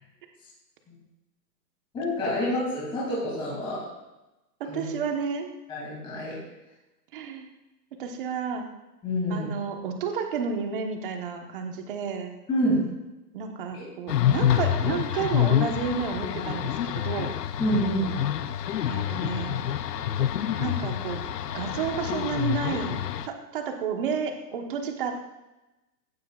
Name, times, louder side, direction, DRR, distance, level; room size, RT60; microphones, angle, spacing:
voice 1, 1.9-3.8 4.7-4.9 5.7-6.4 9.0-9.5 12.5-12.8 13.7-13.8 17.6-18.1, equal, 10° left, -7 dB, 2.6 m, -27 dB
voice 2, 4.6-5.5 7.1-7.5 8.0-8.7 9.3-12.3 13.3-17.3 18.8-19.6 20.6-21.2 21.5-25.1, right 6 dB, 30° right, 4 dB, 1.2 m, -31 dB
sound 1, 14.1-23.3, left 10 dB, 70° left, 0.8 m, -27 dB
15.0 x 11.5 x 2.4 m, 1.0 s
hypercardioid pair, 165°, 49 cm